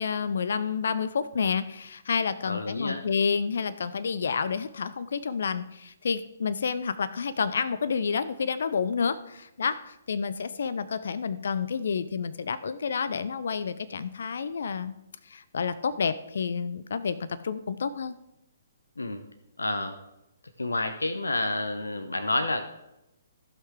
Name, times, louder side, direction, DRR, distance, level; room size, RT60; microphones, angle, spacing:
voice 1, 0.0-15.0 15.2-18.2, left 6 dB, 60° left, 14 dB, 0.5 m, -29 dB
voice 2, 2.5-3.0 19.0-19.2 19.6-20.0 20.6-22.6, left 2 dB, 80° left, 7 dB, 0.9 m, -29 dB
15.5 x 5.8 x 3.7 m, 0.89 s
figure-of-eight pair, 130°, 0 cm